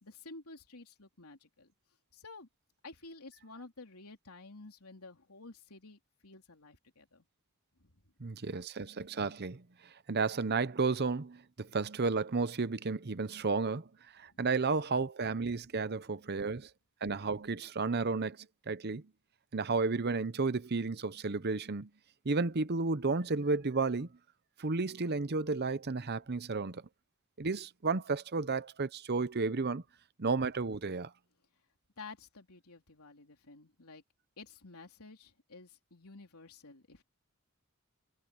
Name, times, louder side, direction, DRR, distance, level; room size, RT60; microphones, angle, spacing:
voice 1, 0.0-1.7 2.1-2.5 2.8-7.3 7.8-8.3 14.2-14.3 32.0-34.0 34.4-37.0, left 3 dB, 90° left, 3.6 m, -52 dB
voice 2, 8.2-13.9 14.1-16.7 17.0-19.1 19.5-21.9 22.2-24.1 24.6-26.8 27.4-29.8 30.2-31.1, right 4 dB, 50° right, 0.8 m, -32 dB
head